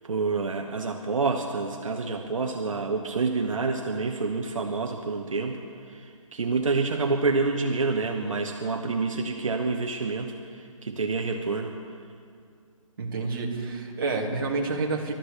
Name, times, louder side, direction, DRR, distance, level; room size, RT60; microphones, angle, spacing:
voice 1, 0.1-5.6 5.9-11.7, right 4 dB, 65° right, 3 dB, 1.1 m, -28 dB
voice 2, 13.0-15.1, right 3 dB, 40° right, -2 dB, 2.0 m, -29 dB
29.0 x 13.5 x 3.3 m, 2.3 s
hypercardioid pair, 175°, 18 cm